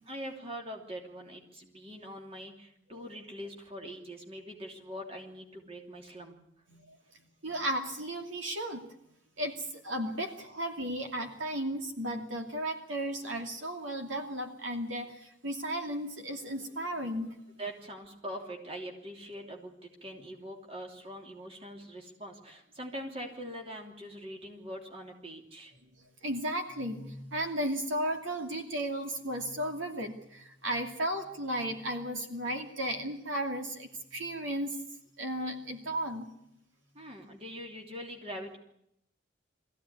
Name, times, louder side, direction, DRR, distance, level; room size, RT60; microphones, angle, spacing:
voice 1, 0.1-6.3 17.6-25.7 36.9-38.6, equal, 30° right, 2 dB, 3.1 m, -43 dB
voice 2, 7.4-8.9 9.4-17.4 26.2-34.8 35.2-36.3, right 1 dB, 80° right, 4 dB, 2.7 m, -34 dB
22.0 x 15.5 x 9.7 m, 0.77 s
head